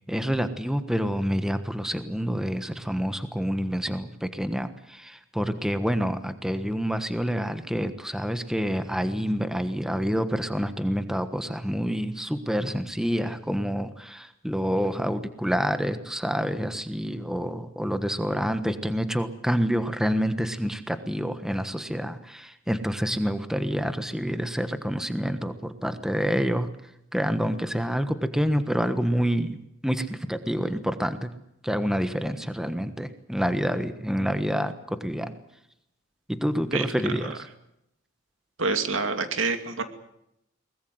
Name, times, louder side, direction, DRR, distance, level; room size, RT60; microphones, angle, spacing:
voice 1, 0.1-26.7 27.1-29.6 29.8-31.3 31.6-35.4 36.3-37.5, equal, 5° right, 9 dB, 1.3 m, -27 dB
voice 2, 38.6-39.8, right 4 dB, 85° right, 7 dB, 2.6 m, -26 dB
22.5 x 20.5 x 7.9 m, 0.80 s
head